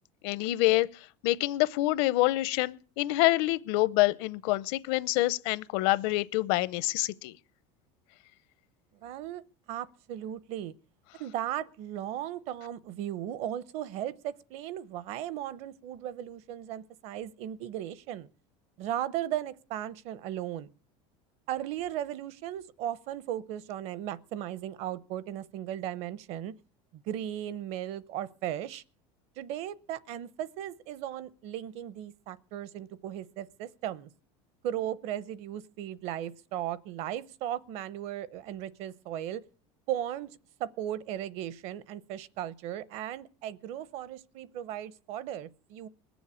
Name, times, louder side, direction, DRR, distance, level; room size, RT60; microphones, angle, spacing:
voice 1, 0.2-0.9 1.2-7.3, left 18 dB, 65° left, 0.7 m, -26 dB
voice 2, 9.0-9.4 9.7-10.7 11.2-18.3 18.8-20.7 21.5-26.5 26.9-28.8 29.4-34.1 34.6-39.4 39.9-40.3 40.6-45.9, right 11 dB, 50° right, 0.8 m, -36 dB
21.0 x 7.2 x 8.5 m
cardioid pair, 165°, 14 cm